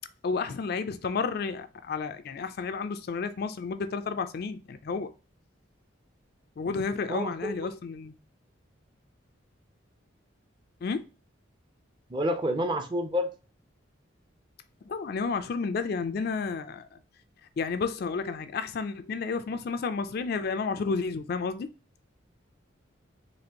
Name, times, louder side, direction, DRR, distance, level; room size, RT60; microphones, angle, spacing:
voice 1, 0.2-5.1 6.6-8.1 10.8-11.1 14.8-17.0 17.6-21.7, left 4 dB, 50° left, 0.3 m, -31 dB
voice 2, 7.1-7.7 12.1-13.3, equal, 25° right, 0.5 m, -29 dB
4.2 x 3.2 x 2.8 m
head